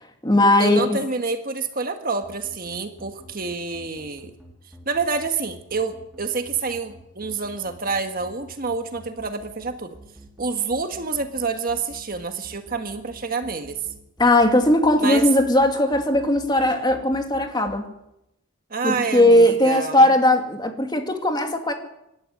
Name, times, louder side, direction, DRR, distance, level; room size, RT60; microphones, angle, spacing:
voice 1, 0.0-1.0 14.2-17.8 18.8-21.7, left 1 dB, 20° left, 4 dB, 2.5 m, -18 dB
voice 2, 0.6-4.3 4.8-10.0 10.4-13.8 15.0-15.2 18.7-20.0, right 4 dB, 40° right, 6 dB, 1.6 m, -28 dB
sound 1, 2.2-17.8, right 1 dB, 5° right, 4.3 m, -46 dB
25.5 x 13.0 x 9.8 m, 0.85 s
head